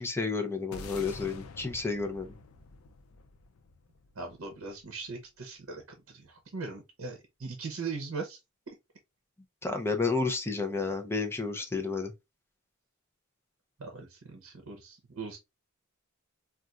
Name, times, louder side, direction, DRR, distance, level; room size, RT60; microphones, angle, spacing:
voice 1, 0.0-2.4 9.6-12.1, left 4 dB, 10° left, 0.5 m, -31 dB
sound 1, 0.7-5.2, left 4 dB, 85° left, 0.5 m, -47 dB
voice 2, 4.2-8.4 8.7-8.8 13.8-15.4, right 4 dB, 70° right, 0.7 m, -40 dB
4.1 x 2.4 x 2.4 m
head